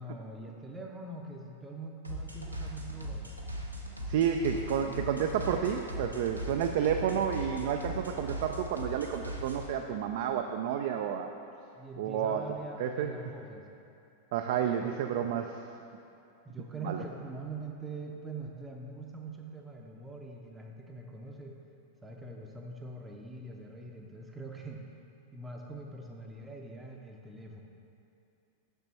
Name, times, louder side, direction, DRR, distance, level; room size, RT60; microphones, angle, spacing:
voice 1, 0.0-3.4 7.0-7.2 11.7-13.7 14.7-14.8 15.0-15.4 16.4-21.6 22.0-24.8 25.3-27.6, right 2 dB, 10° right, 0 dB, 0.6 m, -43 dB
sound 1, 2.0-9.7, equal, 85° right, 0.7 m, -39 dB
voice 2, 4.1-11.3 12.0-12.4 12.8-13.1 14.3-15.6 16.8-17.0, right 8 dB, 50° right, 5 dB, 0.3 m, -30 dB
6.9 x 6.0 x 4.2 m, 2.7 s
figure-of-eight pair, 90°, 0 cm